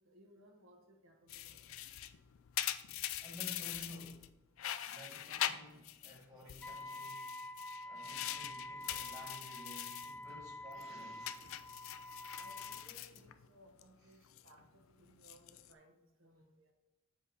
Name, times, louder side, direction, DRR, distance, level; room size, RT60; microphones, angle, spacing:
voice 1, 0.0-1.7 2.9-3.3 10.1-11.7 12.3-16.7, right 1 dB, 75° right, 1.2 m, -63 dB
sound 1, 1.3-4.3 4.6-6.2 6.5-10.1 10.5-10.8 11.2-13.8 14.1-14.5 15.1-15.7, left 12 dB, 80° left, 0.4 m, -43 dB
voice 2, 3.2-4.4 4.9-7.3 7.8-11.1, equal, 15° right, 1.5 m, -53 dB
Wind instrument woodwind instrument, 6.6-12.9, left 1 dB, 5° left, 0.4 m, -47 dB
7.6 x 4.8 x 3.9 m
head